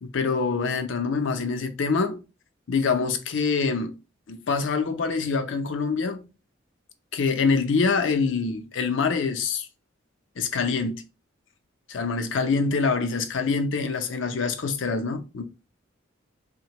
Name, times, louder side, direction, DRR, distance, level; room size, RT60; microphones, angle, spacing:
voice 1, 0.0-2.2 2.7-4.0 4.3-6.2 7.1-9.7 10.4-11.0 11.9-15.4, left 4 dB, 80° left, 0.5 m, -25 dB
3.4 x 2.2 x 2.9 m
head